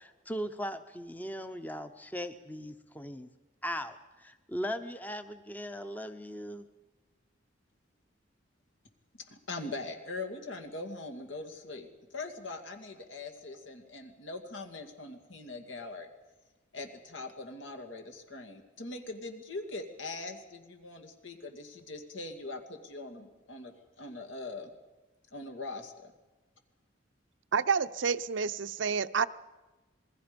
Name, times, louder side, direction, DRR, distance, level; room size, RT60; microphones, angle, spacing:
voice 1, 0.0-3.3 3.6-6.7, equal, 10° left, 9 dB, 0.7 m, -38 dB
voice 2, 9.3-16.1 16.7-24.7 25.3-26.1, left 2 dB, 80° left, 5 dB, 2.3 m, -42 dB
voice 3, 27.5-29.3, right 5 dB, 70° right, 13 dB, 0.6 m, -29 dB
27.5 x 20.5 x 5.3 m, 1.1 s
head